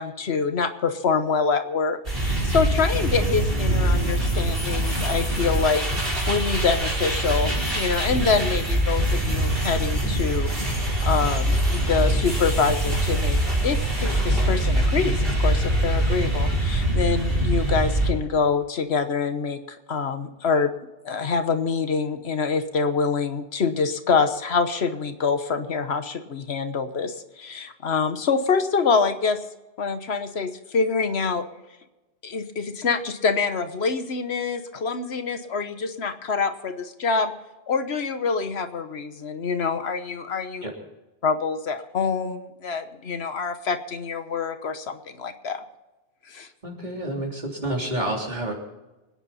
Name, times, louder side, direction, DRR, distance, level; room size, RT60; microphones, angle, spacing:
voice 1, 0.0-13.4 13.6-20.7 21.0-29.4 29.8-31.4 32.2-37.3 37.7-40.6 41.2-45.6 46.3-46.5, left 5 dB, 85° left, 9 dB, 1.4 m, -26 dB
sound 1, 2.0-18.1, right 1 dB, 60° right, 4.5 m, -23 dB
voice 2, 46.6-48.5, right 1 dB, 45° right, -1 dB, 3.5 m, -29 dB
25.5 x 9.9 x 4.2 m, 1.1 s
omnidirectional pair, 1.1 m